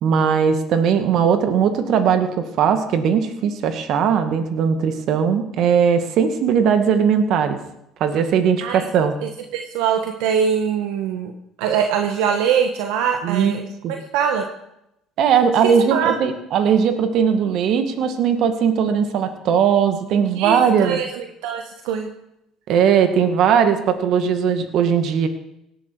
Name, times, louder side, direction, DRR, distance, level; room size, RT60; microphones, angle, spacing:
voice 1, 0.0-7.6 8.0-9.2 13.2-13.5 13.8-13.9 15.2-21.0 22.7-25.3, right 7 dB, 65° right, 8 dB, 1.9 m, -19 dB
voice 2, 9.2-11.3 11.6-13.6 14.1-14.5 15.6-16.1 20.4-22.1, right 7 dB, 80° right, 4 dB, 1.3 m, -22 dB
18.0 x 11.5 x 4.7 m, 0.82 s
supercardioid pair, 75°, 0 cm